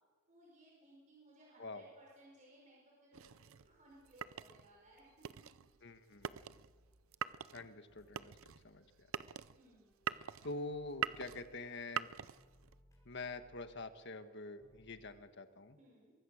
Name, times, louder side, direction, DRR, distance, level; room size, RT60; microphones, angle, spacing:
voice 1, 0.3-5.6 9.6-10.0 15.8-16.1, right 1 dB, 35° right, -3 dB, 5.4 m, -63 dB
sound 1, 1.7-2.9 3.4-5.3 5.6-7.6 7.9-15.1, equal, 15° left, 6.0 m, -70 dB
sound 2, 3.1-12.8, right 8 dB, 80° right, 0.6 m, -44 dB
voice 2, 5.8-6.4 7.5-9.1 10.4-12.1 13.0-15.8, left 2 dB, 55° left, 8 dB, 1.5 m, -46 dB
23.5 x 23.5 x 6.5 m, 1.5 s
head